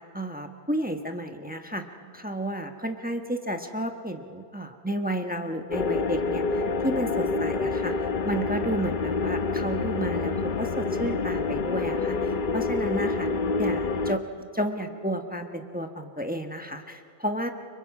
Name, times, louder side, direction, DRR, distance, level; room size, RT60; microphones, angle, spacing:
voice 1, 0.1-1.8 2.1-7.9 8.2-10.3 10.6-13.3 13.6-14.2 14.5-17.5, right 1 dB, 10° right, 5 dB, 1.0 m, -31 dB
sound 1, 5.7-14.2, left 4 dB, 50° left, 0.9 m, -27 dB
30.0 x 25.0 x 4.9 m, 2.4 s
omnidirectional pair, 1.2 m